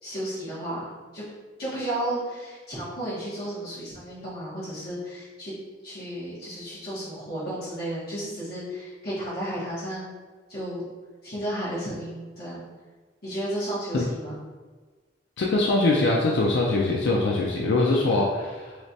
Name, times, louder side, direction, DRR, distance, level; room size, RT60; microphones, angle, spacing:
voice 1, 0.0-1.2 1.6-5.5 5.8-10.1 10.5-10.8 11.2-12.7 13.2-14.4, right 1 dB, 60° left, -10 dB, 1.4 m, -33 dB
voice 2, 15.4-18.8, left 2 dB, 75° left, -2 dB, 0.4 m, -23 dB
3.2 x 3.1 x 2.7 m, 1.4 s
head